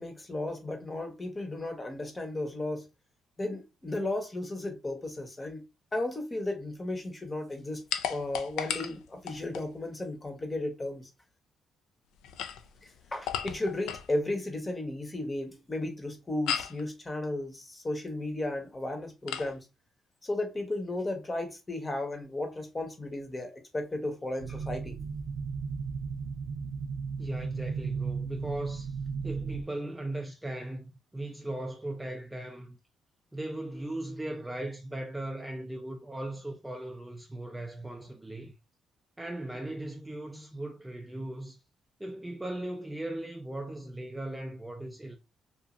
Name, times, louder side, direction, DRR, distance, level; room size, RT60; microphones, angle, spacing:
voice 1, 0.0-2.8 3.4-5.6 5.9-7.8 8.1-11.1 12.8-19.7 20.2-25.0, left 2 dB, 20° left, 0.8 m, -34 dB
sound 1, 7.9-9.7 12.2-14.1 16.5-16.8 19.3-19.5, left 9 dB, 90° left, 0.3 m, -35 dB
sound 2, 24.4-29.6, right 5 dB, 75° right, 0.3 m, -35 dB
voice 2, 27.2-29.0 29.2-32.8 33.3-38.5 39.2-41.6 42.0-45.2, right 1 dB, 10° right, 0.4 m, -38 dB
2.9 x 2.4 x 2.4 m
cardioid pair, 90°, 0 cm